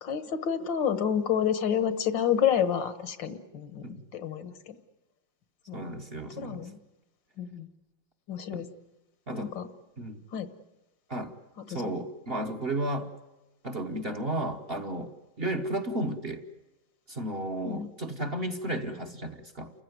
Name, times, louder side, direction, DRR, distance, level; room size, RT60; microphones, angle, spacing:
voice 1, 0.0-4.8 5.7-5.8 6.4-6.8 7.4-7.7 8.3-8.7 9.3-9.7 10.3-10.5 11.7-11.9 17.6-17.9, left 8 dB, 75° left, 12 dB, 2.0 m, -29 dB
voice 2, 5.7-6.7 8.5-8.6 9.3-9.6 10.0-10.2 11.1-11.3 11.7-13.1 13.6-15.1 15.4-16.4 17.1-19.7, right 1 dB, 35° right, 5 dB, 1.2 m, -33 dB
29.0 x 15.5 x 9.5 m, 1.1 s
omnidirectional pair, 2.0 m